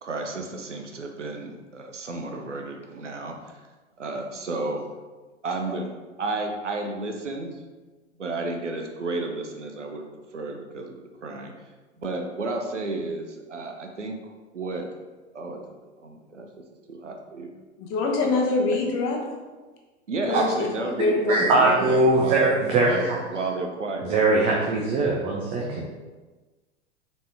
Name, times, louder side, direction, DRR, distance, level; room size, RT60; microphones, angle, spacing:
voice 1, 0.0-3.6 4.0-4.9 5.4-5.9 6.2-7.6 8.2-10.1 10.3-11.5 12.0-14.2 14.5-15.0 15.3-15.6 16.0-16.5 16.9-17.5 20.1-24.1, right 3 dB, 80° right, 4 dB, 0.7 m, -32 dB
voice 2, 17.8-19.2 20.3-21.7, left 3 dB, 35° left, 0 dB, 0.9 m, -25 dB
voice 3, 21.3-23.2 24.1-25.9, right 2 dB, 15° right, -3 dB, 0.3 m, -21 dB
4.0 x 3.5 x 3.3 m, 1.3 s
figure-of-eight pair, 90°, 36 cm